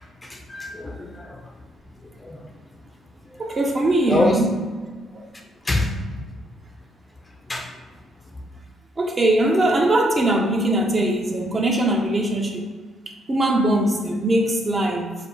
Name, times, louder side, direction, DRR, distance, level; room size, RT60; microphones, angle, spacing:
voice 1, 0.2-1.4 2.2-2.4 4.1-4.4 5.6-6.2 7.5-7.7, left 1 dB, 20° left, 2 dB, 0.6 m, -25 dB
voice 2, 3.4-4.5 9.0-12.7 13.3-15.1, right 1 dB, 30° right, 1 dB, 0.7 m, -21 dB
4.9 x 2.1 x 4.8 m, 1.4 s
cardioid pair, 90°, 0 cm